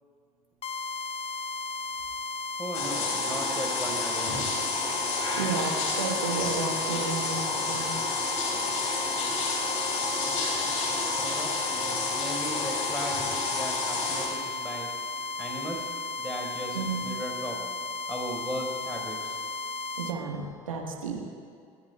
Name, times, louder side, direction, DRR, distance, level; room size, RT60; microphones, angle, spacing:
sound 1, 0.6-20.2, left 3 dB, 35° left, 0.7 m, -35 dB
voice 1, 2.6-4.5 11.2-14.9 15.4-15.9 16.2-17.6 18.1-19.4, equal, 5° left, -2 dB, 4.7 m, -37 dB
sound 2, 2.7-14.3, left 3 dB, 65° left, 3.9 m, -30 dB
voice 2, 5.0-8.0 16.7-17.1 20.0-21.2, right 4 dB, 80° right, 1 dB, 1.5 m, -33 dB
29.5 x 14.0 x 2.4 m, 2.2 s
figure-of-eight pair, 60°, 17 cm